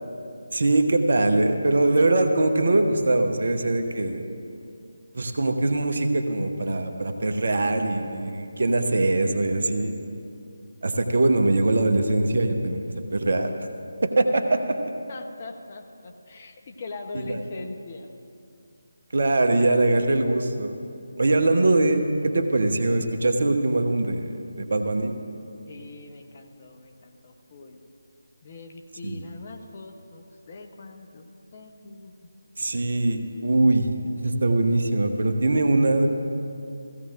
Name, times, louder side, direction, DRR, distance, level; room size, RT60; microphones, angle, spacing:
voice 1, 0.5-4.2 5.1-10.0 10.8-12.8 13.1-13.5 14.0-14.8 17.2-17.4 19.1-20.7 21.2-25.1 29.0-29.2 32.6-33.9 34.2-36.1, right 2 dB, 55° right, 5 dB, 1.0 m, -22 dB
voice 2, 15.1-18.1 25.7-27.8 28.4-32.1, left 3 dB, 35° left, 4 dB, 0.9 m, -41 dB
17.0 x 16.0 x 2.5 m, 2.5 s
figure-of-eight pair, 155°, 0 cm